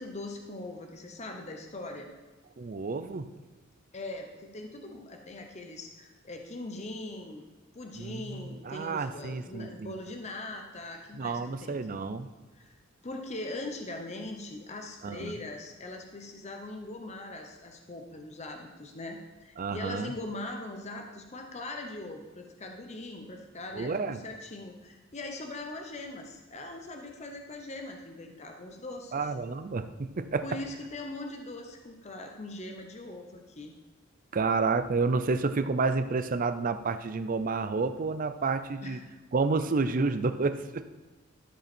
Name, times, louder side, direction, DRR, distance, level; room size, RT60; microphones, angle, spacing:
voice 1, 0.0-2.1 3.9-7.5 7.7-11.8 12.5-12.8 13.0-29.3 30.4-33.7 38.8-39.1, left 2 dB, 35° left, 3 dB, 0.8 m, -41 dB
voice 2, 2.6-3.3 8.0-8.2 8.6-9.9 11.2-12.3 15.0-15.4 19.6-20.1 23.7-24.2 29.1-30.5 34.3-39.0 39.3-40.9, right 4 dB, 40° right, 11 dB, 0.5 m, -30 dB
12.5 x 5.3 x 4.4 m, 1.3 s
head